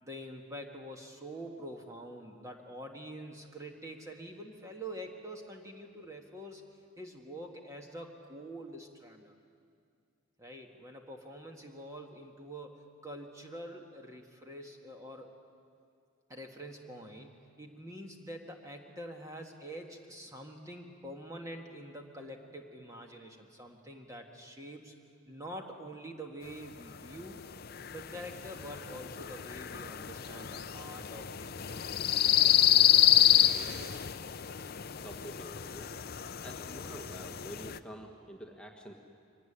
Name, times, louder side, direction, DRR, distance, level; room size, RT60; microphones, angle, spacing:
voice 1, 0.0-6.6 7.0-9.3 10.4-15.3 16.3-24.9 25.3-27.4 27.9-32.6 33.5-34.1, right 1 dB, 15° right, 2 dB, 1.7 m, -46 dB
sound 1, 26.9-37.8, left 12 dB, 45° left, 0.6 m, -28 dB
voice 2, 35.0-36.0 36.4-38.9, right 1 dB, 5° left, 1 dB, 1.6 m, -47 dB
24.0 x 18.5 x 10.0 m, 2.3 s
head